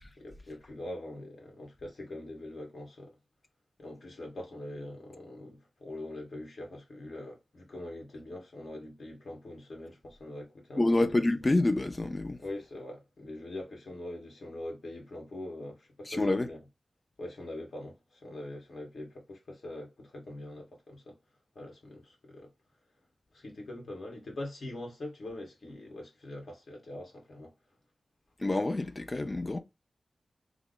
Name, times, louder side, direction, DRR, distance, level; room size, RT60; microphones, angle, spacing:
voice 1, 0.2-3.1 3.8-10.9 12.4-16.6 17.2-21.2 21.5-22.5 23.3-27.5, left 1 dB, 65° left, 1.6 m, -43 dB
voice 2, 10.8-12.4 16.1-16.5 28.4-29.6, left 2 dB, 30° left, 0.5 m, -27 dB
3.5 x 2.1 x 3.7 m
wide cardioid pair, 110°, 0 cm